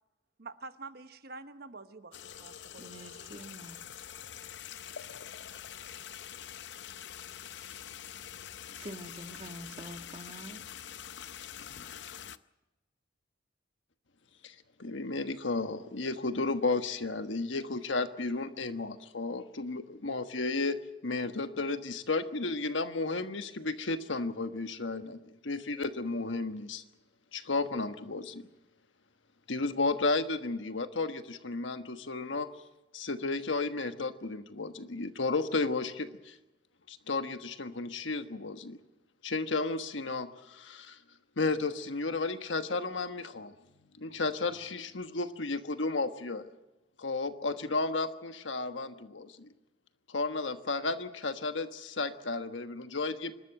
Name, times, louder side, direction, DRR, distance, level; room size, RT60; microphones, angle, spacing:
voice 1, 0.4-2.8, right 3 dB, 55° right, 1.1 m, -47 dB
sound 1, 2.1-12.4, left 9 dB, 65° left, 0.6 m, -45 dB
voice 2, 2.8-3.8 8.5-10.7, right 1 dB, 35° right, 1.5 m, -46 dB
voice 3, 14.4-26.8 27.3-28.4 29.5-32.5 32.9-36.4 36.9-38.8 39.2-41.0 41.4-43.5 44.0-46.5 47.0-49.5 50.1-53.3, left 3 dB, 85° left, 1.3 m, -33 dB
26.0 x 13.0 x 8.9 m
head